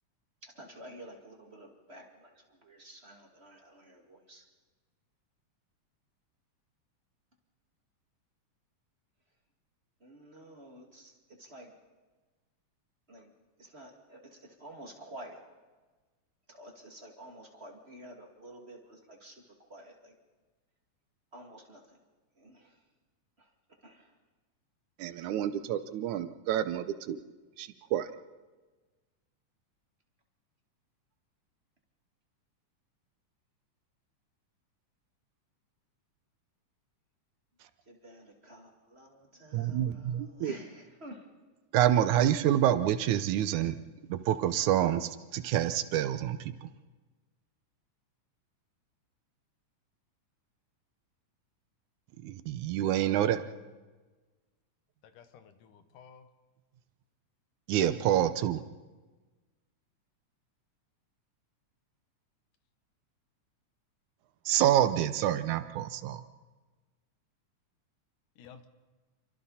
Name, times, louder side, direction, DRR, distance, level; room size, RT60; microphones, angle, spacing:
voice 1, 0.4-4.4 10.0-11.1 11.4-11.7 13.1-13.3 13.6-15.4 16.5-19.3 19.6-20.1 21.3-22.0 22.4-22.7 23.8-24.1 37.9-41.2, right 1 dB, 20° right, 0 dB, 2.4 m, -50 dB
voice 2, 25.0-27.2 27.6-28.1 39.5-40.5 41.7-43.8 44.1-46.7 52.2-53.4 57.7-58.6 64.5-66.2, right 11 dB, 75° right, 11 dB, 2.1 m, -27 dB
voice 3, 55.1-56.3 68.4-68.7, left 7 dB, 85° left, 8 dB, 2.9 m, -53 dB
28.5 x 24.0 x 4.2 m, 1.3 s
omnidirectional pair, 3.6 m